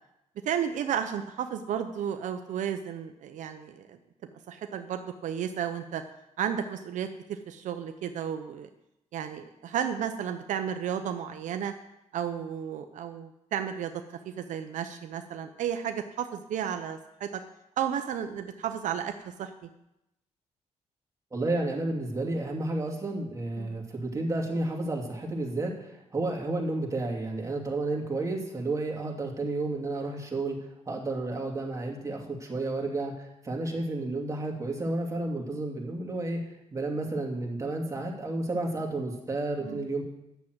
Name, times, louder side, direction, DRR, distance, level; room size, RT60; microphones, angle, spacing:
voice 1, 0.4-4.0 4.5-6.0 6.4-8.7 9.1-11.7 12.1-17.4 17.8-19.7 23.6-23.8 39.6-39.8, right 8 dB, 80° right, 7 dB, 0.8 m, -33 dB
voice 2, 21.3-30.6 30.9-36.4 36.7-40.0, right 2 dB, 25° right, 0 dB, 2.7 m, -31 dB
10.5 x 7.3 x 7.9 m, 0.86 s
cardioid pair, 100°, 13 cm